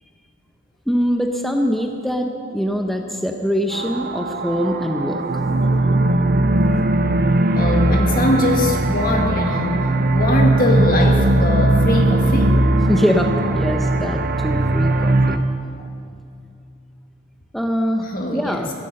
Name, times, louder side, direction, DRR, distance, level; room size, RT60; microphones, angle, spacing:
voice 1, 0.9-5.2 6.7-6.8 12.9-15.4 17.5-18.1 18.3-18.7, equal, ahead, 3 dB, 0.7 m, -23 dB
sound 1, 3.7-15.4, right 2 dB, 50° right, 0.7 m, -19 dB
voice 2, 7.5-12.7 14.9-15.0 15.8-15.9 18.0-18.7, left 1 dB, 45° left, 1 dB, 1.7 m, -22 dB
15.5 x 15.0 x 5.4 m, 2.4 s
head